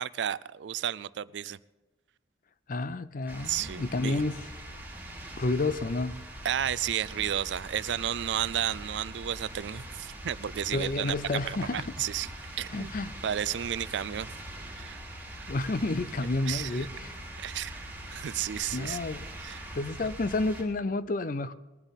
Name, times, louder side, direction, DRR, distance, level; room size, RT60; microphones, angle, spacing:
voice 1, 0.0-1.6 3.4-4.2 6.4-11.2 11.4-12.3 12.6-12.9 13.2-14.3 14.8-15.0 15.4-15.5 16.5-16.9 17.4-19.0 19.4-19.6, right 10 dB, 90° right, 19 dB, 0.4 m, -32 dB
voice 2, 2.7-4.4 5.4-6.1 10.7-11.8 12.7-13.1 15.5-17.2 18.7-19.2 19.7-21.5, left 2 dB, 50° left, 15 dB, 0.6 m, -30 dB
sound 1, 3.3-20.6, right 1 dB, 10° right, 3.2 m, -42 dB
20.0 x 11.5 x 4.1 m, 1.2 s
head